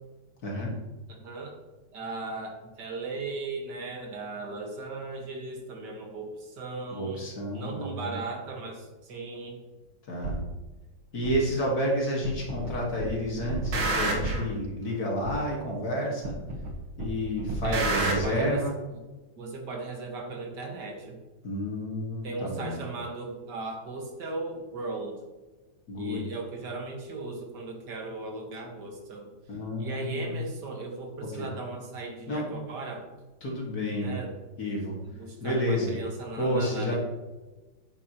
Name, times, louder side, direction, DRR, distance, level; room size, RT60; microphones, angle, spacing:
voice 1, 0.4-0.7 6.9-8.2 10.1-10.4 11.1-16.4 17.0-18.7 21.4-22.8 25.9-26.2 29.5-30.4 31.2-31.5 32.3-32.4 33.4-34.2 34.6-35.0 35.4-35.9 36.4-37.0, equal, 45° left, -2 dB, 2.4 m, -30 dB
voice 2, 1.1-1.6 1.9-7.2 7.5-9.6 17.6-18.7 19.4-21.2 22.2-25.2 26.0-29.3 29.8-33.1 34.0-34.4 35.0-37.0, right 3 dB, 55° right, 2 dB, 2.1 m, -37 dB
sound 1, 10.2-10.4 11.2-11.3 12.2-12.7 13.0-14.5 15.2-15.3 16.2-16.7 17.0-18.2, right 2 dB, 75° right, 2.2 m, -29 dB
10.0 x 8.6 x 3.0 m, 1.1 s
omnidirectional pair, 2.3 m